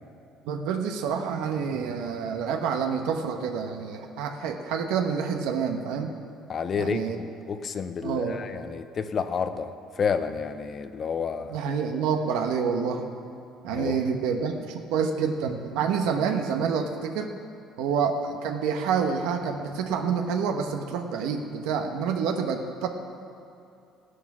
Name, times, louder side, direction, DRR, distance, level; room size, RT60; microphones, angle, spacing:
voice 1, 0.4-6.1 6.8-7.2 8.0-8.4 11.5-13.1 13.6-17.3 17.8-22.9, right 6 dB, 90° right, 4 dB, 1.0 m, -28 dB
voice 2, 6.5-11.6 13.7-14.0, left 6 dB, 40° left, 10 dB, 0.7 m, -30 dB
15.0 x 9.8 x 6.1 m, 2.7 s
cardioid pair, 125°, 0 cm